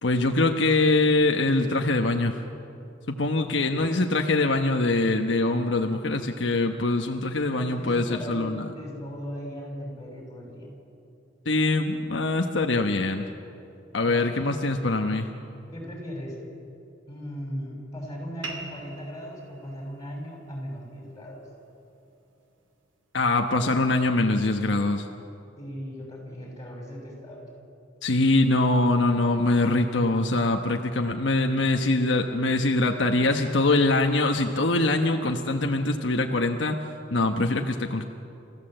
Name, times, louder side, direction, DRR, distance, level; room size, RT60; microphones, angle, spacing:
voice 1, 0.0-2.4 3.1-8.6 11.5-13.3 13.9-15.3 23.1-25.1 28.0-36.8 37.1-38.0, left 2 dB, 70° left, 4 dB, 1.1 m, -23 dB
voice 2, 3.4-3.9 7.6-10.7 14.0-14.4 15.7-16.4 17.1-21.4 25.6-27.5, equal, 20° left, 0 dB, 6.2 m, -38 dB
sound 1, 18.4-23.5, right 3 dB, 80° right, 2.6 m, -45 dB
29.5 x 15.5 x 7.8 m, 2.7 s
head